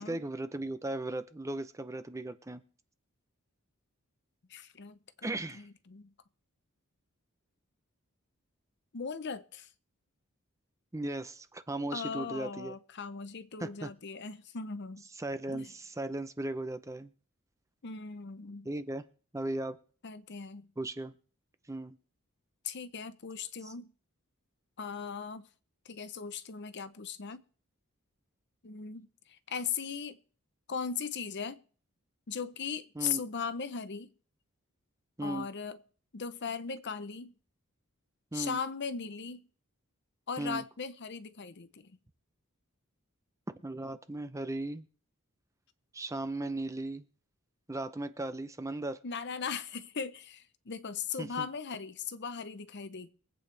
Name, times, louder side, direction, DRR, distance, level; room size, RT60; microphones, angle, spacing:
voice 1, 0.0-2.6 5.2-5.7 10.9-12.7 13.6-13.9 15.2-17.1 18.6-19.0 19.3-19.8 20.8-21.1 21.7-21.9 33.0-33.2 35.2-35.5 38.3-38.6 40.4-40.6 43.6-44.9 45.9-47.1 47.7-49.0 51.2-51.5, right 2 dB, 15° right, 0.6 m, -36 dB
voice 2, 4.5-6.1 8.9-9.7 11.9-15.0 15.5-15.7 17.8-18.7 20.0-20.7 22.6-23.9 24.8-25.5 25.8-27.4 28.6-30.2 30.7-31.6 32.3-34.1 35.2-35.8 36.1-37.3 38.3-39.5 40.3-42.0 49.0-53.1, left 6 dB, 50° left, 0.7 m, -38 dB
23.0 x 8.6 x 3.3 m
head